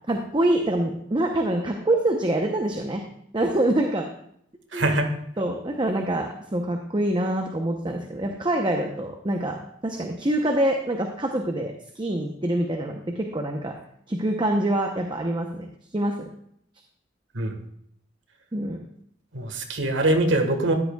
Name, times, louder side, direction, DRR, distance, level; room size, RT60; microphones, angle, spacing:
voice 1, 0.1-3.0 3.3-4.1 4.7-5.0 5.4-9.6 9.8-13.7 14.1-15.7 15.9-16.3 18.5-18.8, right 1 dB, 25° right, 3 dB, 0.7 m, -25 dB
voice 2, 4.7-5.1 17.3-17.6 19.3-20.7, right 1 dB, 85° right, 5 dB, 1.5 m, -23 dB
13.5 x 10.5 x 2.3 m, 0.69 s
head